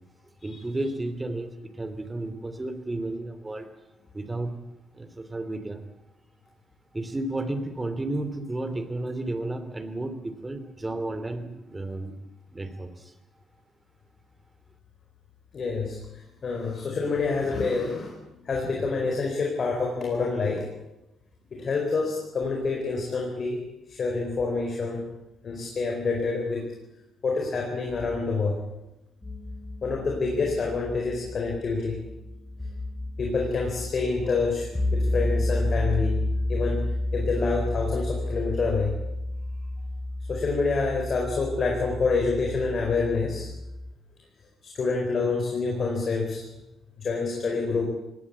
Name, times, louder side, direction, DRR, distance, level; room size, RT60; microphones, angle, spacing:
voice 1, 0.4-3.7 4.1-4.6 5.0-5.8 6.9-12.2 12.5-13.1, right 2 dB, 20° right, 10 dB, 2.8 m, -32 dB
voice 2, 15.5-16.0 16.4-18.1 18.4-20.7 21.5-23.6 23.9-25.0 25.4-26.7 27.2-28.6 29.8-32.0 33.2-36.2 36.5-36.8 37.1-38.9 40.3-43.5 44.7-46.4 47.0-47.8, left 4 dB, 45° left, 1 dB, 4.6 m, -27 dB
sound 1, 29.2-43.9, left 1 dB, 15° left, 6.2 m, -31 dB
19.0 x 18.5 x 8.5 m, 0.93 s
cardioid pair, 90°, 0 cm